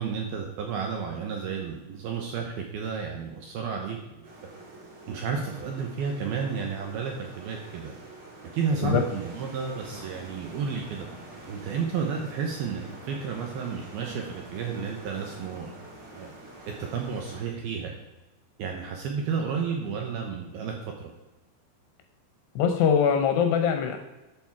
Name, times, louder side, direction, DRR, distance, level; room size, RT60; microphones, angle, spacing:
voice 1, 0.0-4.0 5.1-8.0 8.5-11.1 11.5-15.8 16.1-16.3 16.8-18.0 18.6-21.1, right 6 dB, 75° right, 2 dB, 2.3 m, -32 dB
sound 1, 4.2-17.4, right 1 dB, 40° right, 3.7 m, -46 dB
voice 2, 22.6-24.0, left 7 dB, 75° left, 6 dB, 2.6 m, -22 dB
13.0 x 7.1 x 4.7 m, 1.0 s
omnidirectional pair, 5.5 m